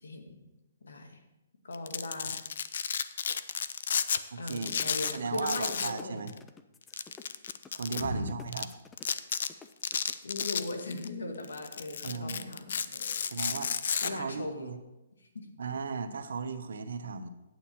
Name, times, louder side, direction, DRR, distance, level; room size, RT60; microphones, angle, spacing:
voice 1, 0.0-0.4 0.8-1.2 1.6-2.4 4.4-6.3 7.9-8.2 10.2-13.2 14.0-14.7 15.3-15.5, left 2 dB, 90° left, 5 dB, 1.6 m, -39 dB
Domestic sounds home sounds, 1.7-4.2 4.5-6.0 6.3-6.4 6.9-8.0 8.5-8.6 9.0-9.5 9.8-11.1 11.4-14.1, left 7 dB, 65° left, 0.5 m, -32 dB
voice 2, 4.3-4.7 5.1-6.3 7.7-8.7 12.0-12.4 13.3-13.7 14.0-14.8 15.6-17.3, right 4 dB, 75° right, 8 dB, 1.0 m, -36 dB
sound 1, 4.7-10.6, left 5 dB, 10° left, 0.4 m, -51 dB
9.1 x 8.6 x 4.4 m, 0.96 s
hypercardioid pair, 155°, 0 cm